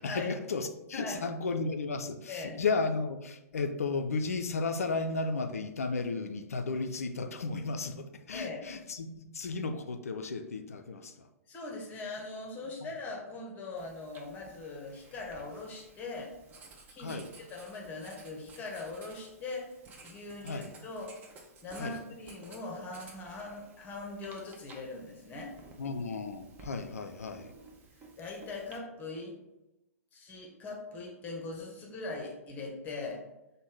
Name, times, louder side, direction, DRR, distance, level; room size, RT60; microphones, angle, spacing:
voice 1, 0.0-11.3 17.0-17.3 20.4-20.7 21.8-22.0 25.8-27.5, left 4 dB, 65° left, 7 dB, 0.4 m, -34 dB
voice 2, 2.3-2.6 8.3-8.6 11.5-16.3 16.9-17.2 17.5-19.7 20.0-21.1 21.6-25.5 28.2-29.4 30.1-33.2, left 3 dB, 20° left, 0 dB, 0.8 m, -41 dB
Writing, 13.8-28.8, right 3 dB, 20° right, 0.5 m, -55 dB
5.1 x 2.1 x 3.3 m, 0.93 s
figure-of-eight pair, 115°, 8 cm